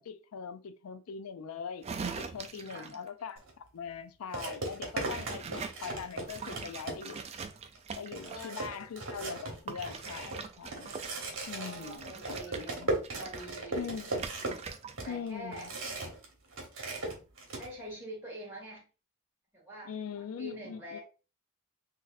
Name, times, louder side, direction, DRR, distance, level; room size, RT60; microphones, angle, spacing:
voice 1, 0.0-1.9 2.2-7.2 8.0-10.9 11.5-12.9 13.7-14.2 15.1-15.7 19.9-21.0, left 6 dB, 85° left, 0.4 m, -42 dB
sound 1, 1.8-3.1 5.0-5.8 6.2-8.7 9.7-15.1 15.4-15.6, right 5 dB, 30° right, 0.3 m, -42 dB
sound 2, 3.4-3.5 4.3-7.3 7.8-7.9 8.1-16.3 16.5-17.7, right 2 dB, 60° right, 1.1 m, -37 dB
voice 2, 8.2-8.6 11.6-12.8 13.1-13.9 15.0-15.7 17.6-18.9 19.5-19.9 20.2-21.0, equal, 10° right, 1.5 m, -45 dB
3.9 x 2.7 x 2.5 m
head